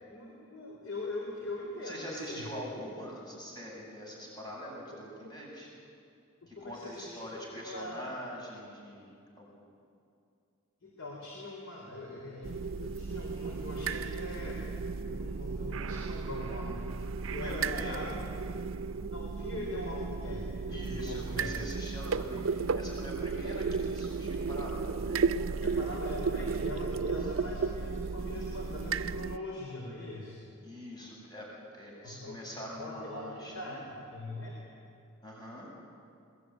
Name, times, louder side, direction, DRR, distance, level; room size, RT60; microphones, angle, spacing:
voice 1, 0.1-2.5 5.2-5.4 6.5-8.1 10.8-14.6 15.1-18.1 19.1-21.5 25.6-30.4 32.0-32.4 32.8-33.8 34.1-34.5, left 2 dB, 85° left, -2 dB, 4.2 m, -42 dB
voice 2, 1.8-5.7 6.5-9.7 17.4-18.1 20.7-25.6 30.6-31.5 31.7-33.8 35.2-35.7, equal, 20° left, -3 dB, 7.1 m, -43 dB
sound 1, 12.4-29.4, right 4 dB, 80° right, 0.5 m, -34 dB
22.0 x 20.5 x 9.4 m, 2.4 s
head